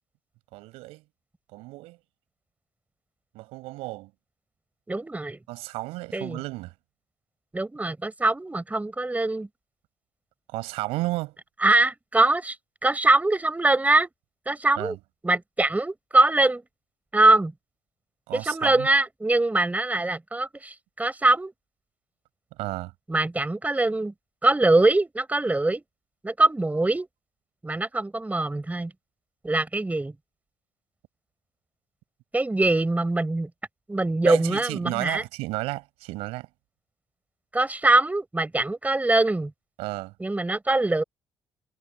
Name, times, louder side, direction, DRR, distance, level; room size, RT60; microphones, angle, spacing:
voice 1, 0.5-1.0 1.5-2.0 3.3-4.1 5.5-6.7 10.5-11.4 14.8-15.0 18.3-18.9 22.6-22.9 34.2-36.5 39.8-40.1, right 20 dB, 85° right, 5.9 m, -32 dB
voice 2, 4.9-5.4 6.1-6.4 7.5-9.5 11.6-12.6 12.8-14.1 14.5-15.0 15.2-16.6 17.1-17.5 18.3-21.5 23.1-24.1 24.4-25.8 26.2-27.1 27.6-28.9 29.4-30.1 32.3-33.5 33.9-35.2 37.5-39.5 40.2-41.0, right 2 dB, 15° right, 6.0 m, -23 dB
supercardioid pair, 70°, 10 cm